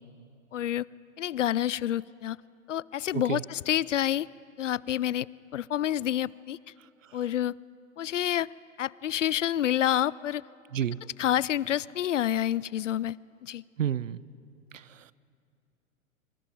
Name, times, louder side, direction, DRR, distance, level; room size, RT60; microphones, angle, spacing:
voice 1, 0.5-0.9 1.2-2.4 2.7-4.3 4.6-6.6 7.1-7.5 8.0-8.5 8.8-10.4 11.2-13.2 13.4-13.6, left 11 dB, 65° left, 23 dB, 0.5 m, -28 dB
voice 2, 3.1-3.4 6.8-7.2 10.7-11.0 13.8-14.2 14.7-15.1, right 9 dB, 70° right, 20 dB, 0.7 m, -32 dB
26.0 x 26.0 x 5.2 m, 2.5 s
figure-of-eight pair, 100°, 40 cm